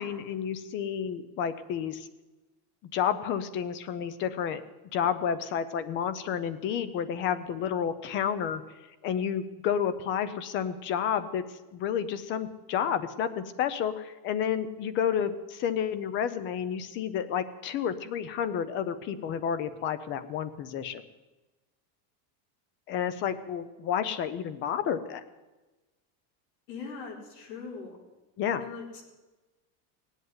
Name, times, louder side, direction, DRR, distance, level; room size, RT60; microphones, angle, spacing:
voice 1, 0.0-2.1 2.9-4.6 4.9-8.6 9.0-11.4 11.7-21.0 22.9-25.2 28.4-28.7, left 8 dB, 25° left, 14 dB, 0.5 m, -30 dB
voice 2, 26.7-28.0 28.6-29.0, left 5 dB, 85° left, 0 dB, 4.7 m, -41 dB
18.5 x 8.1 x 9.4 m, 1.1 s
cardioid pair, 180°, 49 cm